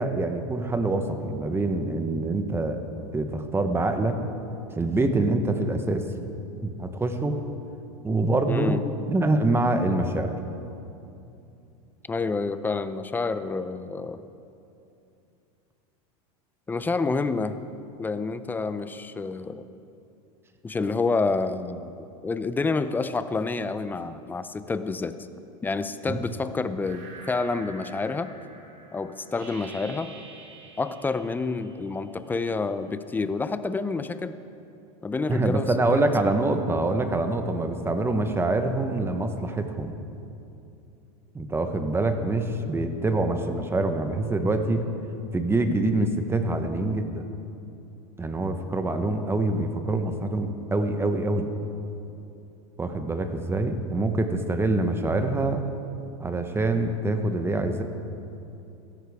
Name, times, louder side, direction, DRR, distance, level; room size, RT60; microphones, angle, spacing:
voice 1, 0.0-2.8 3.1-4.2 4.7-6.1 6.6-7.4 8.0-8.8 9.1-10.4 26.1-26.2 35.3-39.9 41.3-44.8 45.3-47.2 48.2-51.5 52.8-55.6 56.2-57.8, right 2 dB, 15° right, 7 dB, 1.0 m, -25 dB
voice 2, 8.5-8.8 12.1-14.2 16.7-17.5 18.0-19.7 20.6-21.9 22.2-25.1 25.6-28.3 28.9-30.1 30.8-34.4 35.0-36.0, left 3 dB, 10° left, 12 dB, 0.5 m, -28 dB
sound 1, 26.8-32.3, right 3 dB, 65° right, 2.9 m, -47 dB
16.0 x 13.5 x 3.6 m, 2.7 s
supercardioid pair, 115°, 18 cm